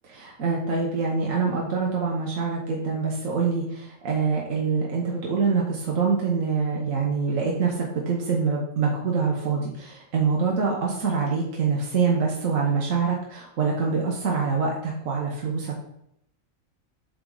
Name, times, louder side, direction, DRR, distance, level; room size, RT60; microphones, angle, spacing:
voice 1, 0.1-15.8, right 5 dB, 75° right, -2 dB, 1.4 m, -25 dB
7.9 x 3.9 x 3.8 m, 0.77 s
omnidirectional pair, 1.4 m